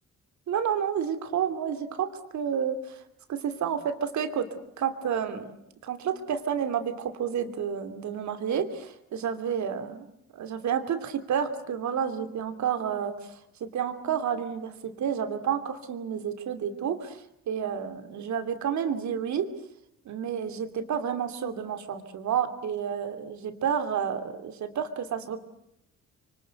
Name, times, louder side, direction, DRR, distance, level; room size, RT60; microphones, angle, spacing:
voice 1, 0.5-3.0 3.3-4.5 4.8-5.5 5.8-10.1 10.3-19.5 20.0-25.4, right 8 dB, 70° right, 9 dB, 2.9 m, -30 dB
26.5 x 24.0 x 8.1 m, 0.78 s
cardioid pair, 90°, 30 cm